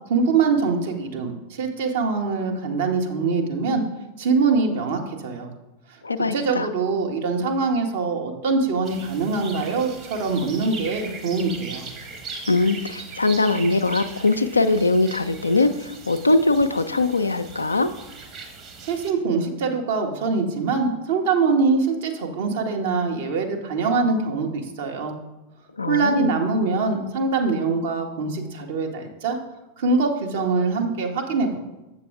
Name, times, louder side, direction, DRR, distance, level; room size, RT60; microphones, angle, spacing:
voice 1, 0.1-3.8 4.2-5.5 5.9-6.0 6.3-11.8 18.8-25.1 25.9-29.4 29.8-31.6, right 4 dB, 55° right, 2 dB, 1.1 m, -23 dB
voice 2, 6.0-6.7 12.5-17.9 25.8-26.3, left 2 dB, 80° left, 10 dB, 0.4 m, -21 dB
sound 1, 8.8-19.1, right 4 dB, 30° right, 1.2 m, -39 dB
7.6 x 6.6 x 3.6 m, 1.0 s
figure-of-eight pair, 90°, 0 cm